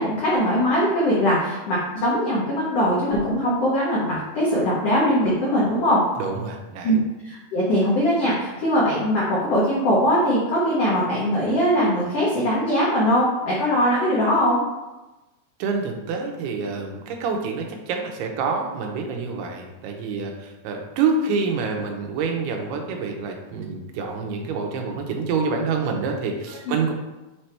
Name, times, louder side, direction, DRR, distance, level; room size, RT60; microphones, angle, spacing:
voice 1, 0.0-6.0 6.8-7.0 7.2-14.6 26.7-26.8, equal, 85° left, -6 dB, 1.3 m, -21 dB
voice 2, 6.2-6.9 15.6-26.9, right 4 dB, 85° right, 2 dB, 2.8 m, -27 dB
6.8 x 3.3 x 4.4 m, 1.1 s
omnidirectional pair, 4.5 m